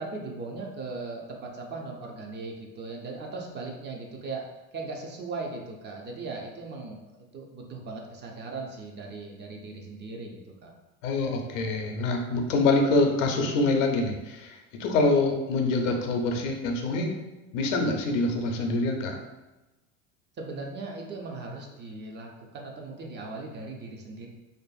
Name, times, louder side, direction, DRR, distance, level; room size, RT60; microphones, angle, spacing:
voice 1, 0.0-4.4 4.7-10.7 20.4-24.3, right 3 dB, 30° right, 0 dB, 0.4 m, -38 dB
voice 2, 11.0-17.1 17.5-19.2, left 2 dB, 80° left, 3 dB, 0.6 m, -25 dB
2.5 x 2.4 x 2.3 m, 1.1 s
hypercardioid pair, 90°, 38 cm